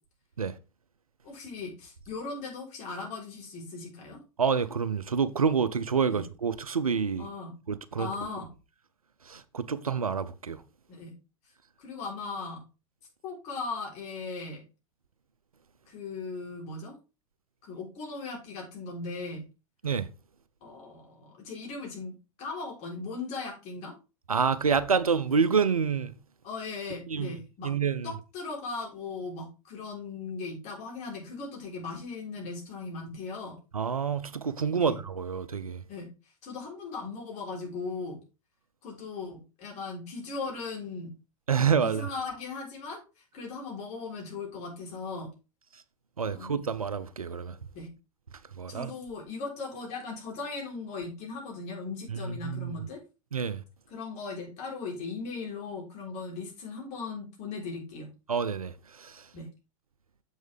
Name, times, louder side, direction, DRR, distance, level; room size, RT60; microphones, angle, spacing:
voice 1, 1.2-4.2 6.1-6.3 7.2-7.6 8.0-8.5 10.9-11.2 11.8-12.6 13.2-14.6 15.9-17.0 17.6-19.5 20.6-22.1 22.4-23.9 26.4-27.7 28.0-33.5 34.8-34.9 35.9-36.1 36.4-38.2 38.8-41.1 41.8-45.3 46.3-46.6 47.7-47.9 48.7-53.0 53.9-58.1 59.3-59.5, left 4 dB, 40° left, 3.8 m, -38 dB
voice 2, 4.4-7.3 7.7-8.1 9.3-10.6 19.8-20.1 24.3-26.1 27.1-27.4 27.6-28.1 33.7-35.8 41.5-42.1 46.2-47.6 48.6-48.9 52.1-52.8 53.3-53.6 58.3-59.3, right 6 dB, 85° right, 0.6 m, -28 dB
7.2 x 6.3 x 3.4 m
figure-of-eight pair, 90°, 18 cm